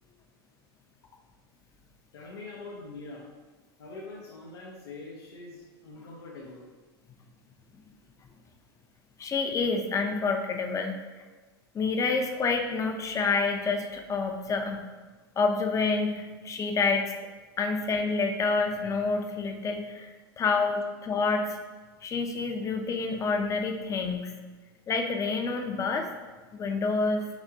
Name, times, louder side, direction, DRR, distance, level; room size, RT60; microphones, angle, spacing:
voice 1, 2.1-3.3 3.8-6.7, left 3 dB, 85° left, -5 dB, 0.9 m, -43 dB
voice 2, 9.2-10.9 11.7-14.8 15.4-17.1 17.6-21.6 22.0-24.3 24.9-26.1 26.5-27.3, left 4 dB, 25° left, 4 dB, 0.6 m, -28 dB
6.0 x 2.9 x 2.7 m, 1.3 s
hypercardioid pair, 105°, 13 cm